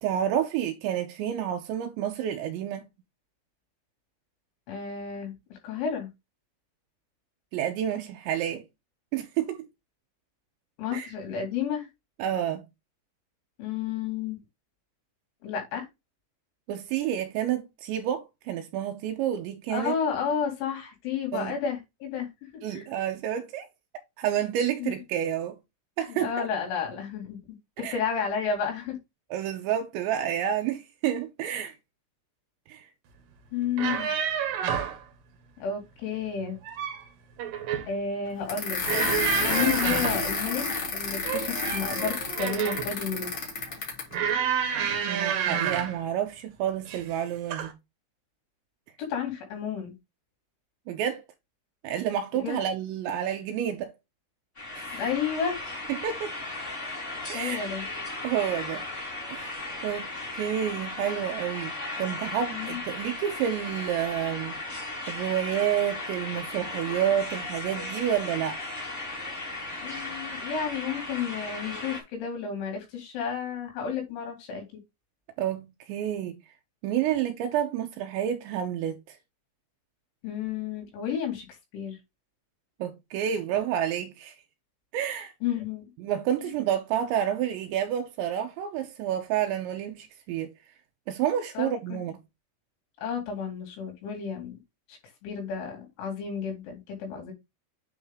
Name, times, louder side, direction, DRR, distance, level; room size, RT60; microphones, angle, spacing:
voice 1, 0.0-2.9 7.5-8.7 9.1-9.7 10.9-11.1 12.2-12.7 16.7-20.0 21.3-21.6 22.6-23.7 24.2-25.6 26.0-26.5 27.8-28.0 29.3-31.7 32.7-32.9 45.0-47.7 50.9-51.2 51.8-53.9 54.7-55.0 55.9-56.3 57.3-57.7 58.2-58.8 59.3-61.7 62.0-64.6 65.1-68.6 75.4-76.4 76.8-79.2 82.8-84.4 84.9-85.3 86.0-90.5 91.1-92.2, right 10 dB, 85° right, 2.8 m, -29 dB
voice 2, 4.7-6.1 10.8-11.9 13.6-14.4 15.4-15.9 19.7-22.3 22.7-22.8 24.8-25.0 26.1-29.0 33.5-34.1 35.6-36.6 37.9-39.1 39.5-40.7 40.9-43.3 49.0-49.9 52.3-52.6 54.9-55.6 57.3-57.9 62.5-62.8 69.8-74.6 80.2-81.5 81.7-82.0 85.4-85.8 86.4-86.5 91.6-92.0 93.0-94.6 94.9-97.3, left 7 dB, 75° left, 4.9 m, -32 dB
sound 1, 33.6-35.0 36.4-37.0 37.4-37.9 38.8-40.3 41.2-42.9 44.1-46.0 46.9-47.2 47.5-47.7, right 8 dB, 65° right, 2.3 m, -29 dB
sound 2, 38.5-44.1, left 4 dB, 50° left, 1.5 m, -30 dB
sound 3, 54.6-72.0, left 2 dB, 20° left, 2.5 m, -36 dB
9.1 x 4.1 x 3.6 m
omnidirectional pair, 5.5 m